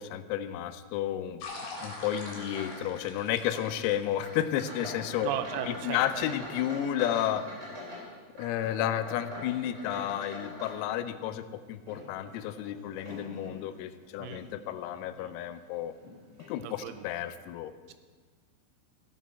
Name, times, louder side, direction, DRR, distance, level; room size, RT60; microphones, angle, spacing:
voice 1, 0.0-1.4 1.8-5.3 5.7-7.5 8.4-15.9 16.5-17.7, left 11 dB, 90° left, 12 dB, 3.4 m, -32 dB
sound 1, 1.4-6.9, left 3 dB, 65° left, 4.1 m, -46 dB
sound 2, 1.7-2.9 3.1-3.7 4.1-11.2 11.7-13.6 14.2-14.4 15.0-15.1 16.0-16.1 16.4-16.5, left 1 dB, 20° right, 4.7 m, -43 dB
voice 2, 5.2-6.0 14.2-14.5 15.2-15.4 16.6-17.0, right 10 dB, 90° right, 8 dB, 3.4 m, -36 dB
15.0 x 10.0 x 4.1 m, 1.5 s
omnidirectional pair, 6.0 m